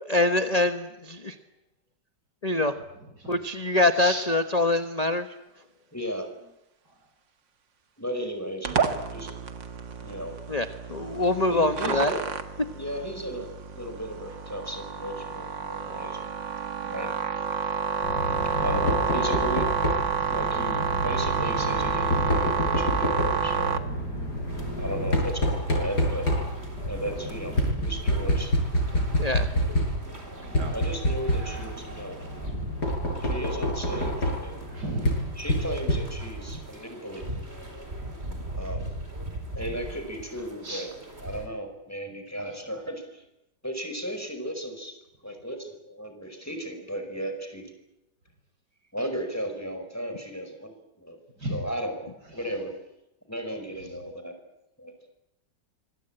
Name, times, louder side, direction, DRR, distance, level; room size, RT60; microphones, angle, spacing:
voice 1, 0.0-1.3 2.4-2.7 3.3-5.3 10.5-12.1 29.2-29.5, left 2 dB, 25° left, 8 dB, 1.1 m, -24 dB
voice 2, 5.9-6.3 8.0-9.4 10.0-10.4 11.5-12.2 12.7-16.3 16.8-17.1 18.6-19.7 20.3-23.8 24.8-26.4 26.9-28.6 30.7-32.5 33.2-34.7 35.4-37.5 38.5-38.9 39.5-40.9 41.2-43.2 43.6-45.0 45.2-47.7 48.9-52.8 53.3-54.4 54.8-54.9, equal, 10° left, 6 dB, 5.0 m, -35 dB
sound 1, 8.7-23.8, right 6 dB, 85° right, 2.5 m, -29 dB
Knock, 18.0-36.4, left 1 dB, 60° left, 7.8 m, -28 dB
sound 2, 24.5-41.5, right 1 dB, 35° right, 4.8 m, -39 dB
voice 3, 34.7-35.3 40.6-40.9 51.4-51.6, right 1 dB, 65° right, 6 dB, 6.3 m, -33 dB
25.5 x 22.5 x 8.8 m, 0.91 s
omnidirectional pair, 1.9 m